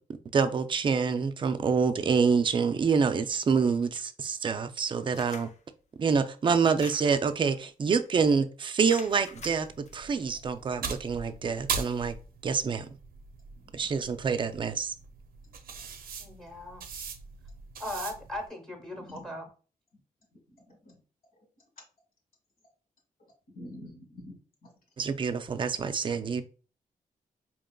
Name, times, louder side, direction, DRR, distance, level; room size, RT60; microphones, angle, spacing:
voice 1, 0.3-5.5 6.0-12.1 12.4-12.9 13.7-14.9 25.0-26.4, right 5 dB, 35° right, 0.4 m, -27 dB
sound 1, 5.1-5.6 6.5-7.3 7.9-8.1 8.9-10.0, left 5 dB, 50° left, 0.5 m, -47 dB
sound 2, 9.3-18.5, right 5 dB, 85° right, 0.5 m, -40 dB
voice 2, 16.2-16.9 17.8-19.5, left 1 dB, 5° left, 1.0 m, -38 dB
voice 3, 18.9-19.3 20.5-21.0 23.5-24.4 24.6-24.7, left 1 dB, 75° left, 1.6 m, -47 dB
5.0 x 2.9 x 2.2 m
wide cardioid pair, 150°, 15 cm